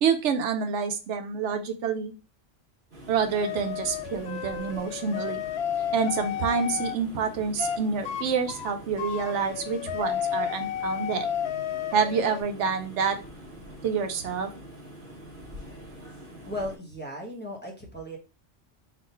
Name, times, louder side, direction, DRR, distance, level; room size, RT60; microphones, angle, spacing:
voice 1, 0.0-2.1 3.1-5.4 5.9-11.3 11.9-13.2 13.8-14.5, right 6 dB, 80° right, 6 dB, 0.9 m, -27 dB
sound 1, 2.9-16.8, equal, 45° right, 1.3 m, -45 dB
sound 2, 3.4-7.0 7.6-7.8 8.1-8.2 8.5-12.4, left 9 dB, 70° left, 0.8 m, -32 dB
voice 2, 16.5-18.2, left 1 dB, 10° left, -2 dB, 1.1 m, -36 dB
4.0 x 2.5 x 4.3 m, 0.31 s
omnidirectional pair, 1.2 m